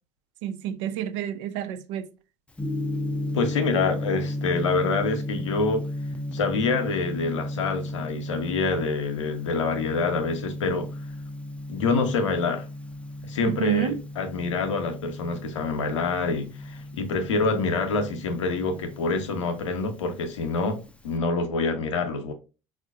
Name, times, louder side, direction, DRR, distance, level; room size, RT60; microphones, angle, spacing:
voice 1, 0.4-2.1 13.4-14.0, right 11 dB, 75° right, 0.4 m, -29 dB
Gong, 2.5-21.2, left 1 dB, 10° left, 0.4 m, -34 dB
voice 2, 3.3-5.9 6.3-10.9 11.7-12.7 13.2-22.3, left 3 dB, 85° left, 0.6 m, -26 dB
4.3 x 2.4 x 2.3 m
hypercardioid pair, 65°, 15 cm